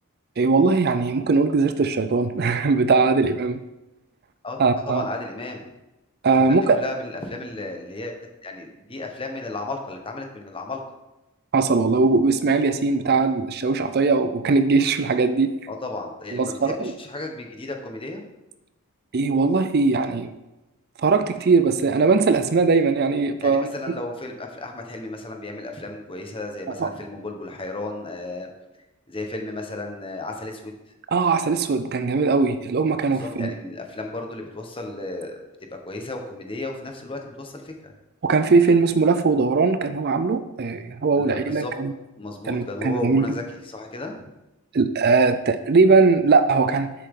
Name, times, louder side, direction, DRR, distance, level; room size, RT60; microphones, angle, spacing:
voice 1, 0.4-3.6 4.6-5.0 6.2-6.8 11.5-15.6 16.3-16.9 19.1-20.3 21.0-23.7 26.8-26.9 31.1-33.5 38.2-41.9 42.5-43.3 44.7-46.9, right 4 dB, 45° right, 10 dB, 0.5 m, -20 dB
voice 2, 4.9-5.7 6.3-8.2 8.4-10.8 15.7-18.2 23.4-28.5 29.1-30.7 33.1-35.4 35.7-37.9 41.1-41.7 42.2-44.2, left 2 dB, 25° left, 3 dB, 1.2 m, -34 dB
10.5 x 7.6 x 3.8 m, 0.99 s
head